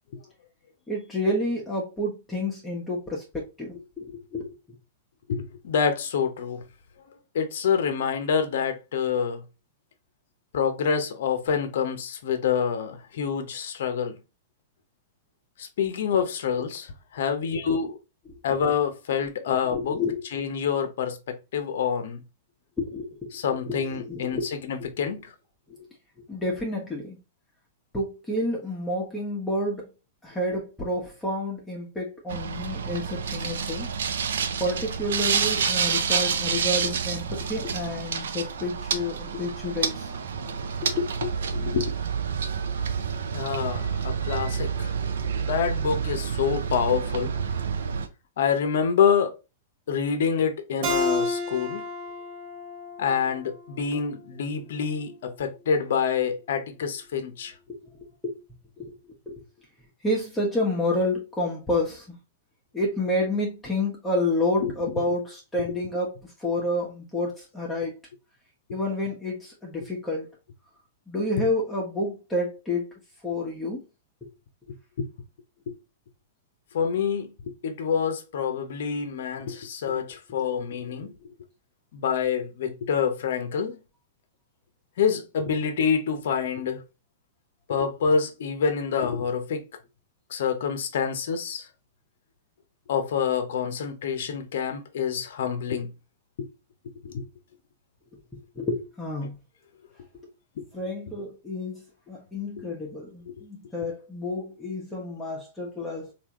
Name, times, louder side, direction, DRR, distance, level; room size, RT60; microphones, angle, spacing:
voice 1, 0.9-4.5 19.6-20.2 22.8-23.4 23.6-24.5 24.8-24.9 26.3-27.2 27.9-29.9 30.2-33.9 34.6-40.1 40.5-41.1 45.1-45.3 57.7-57.8 58.2-58.4 58.8-59.0 59.3-59.4 60.0-62.1 62.7-67.9 68.7-70.3 71.1-72.9 73.2-73.8 80.9-81.1 98.5-99.3 100.7-106.1, left 1 dB, 10° left, 1.1 m, -29 dB
voice 2, 5.3-6.6 7.3-9.4 10.5-14.2 15.6-18.0 18.4-20.0 20.3-22.2 23.3-25.3 41.2-42.0 43.3-44.9 45.5-47.3 48.4-49.4 49.9-51.9 53.0-57.5 64.6-64.7 75.0-75.1 75.7-75.8 76.7-81.1 81.9-83.8 85.0-86.8 87.7-89.7 90.3-91.7 92.9-95.9 96.4-96.5 97.0-97.3 100.6-100.7 102.6-102.7 103.3-103.4, left 7 dB, 65° left, 0.7 m, -27 dB
sound 1, 32.3-48.1, right 6 dB, 70° right, 0.5 m, -28 dB
Keyboard (musical), 50.8-54.1, left 2 dB, 50° right, 1.1 m, -30 dB
3.4 x 2.7 x 2.9 m
hypercardioid pair, 105°, 0 cm